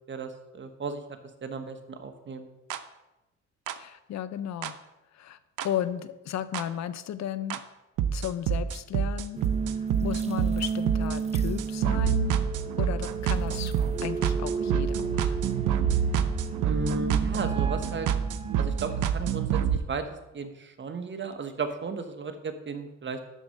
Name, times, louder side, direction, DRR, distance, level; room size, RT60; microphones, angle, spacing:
voice 1, 0.1-1.0 1.4-2.5 16.6-18.1 18.6-20.1 20.3-23.2, right 4 dB, 40° right, 7 dB, 1.2 m, -34 dB
sound 1, 2.7-2.8 3.7-3.8 4.6-4.7 5.6-5.7 6.5-6.6 7.5-7.6 8.0-19.8, right 8 dB, 85° right, 0.7 m, -27 dB
voice 2, 3.8-4.8 5.1-7.6 8.1-9.4 10.0-12.4 12.8-13.7 14.0-15.6, left 10 dB, 65° left, 14 dB, 0.6 m, -34 dB
sound 2, 9.3-19.0, right 5 dB, 20° right, 0.7 m, -33 dB
12.0 x 4.3 x 6.5 m, 0.99 s
cardioid pair, 90°, 30 cm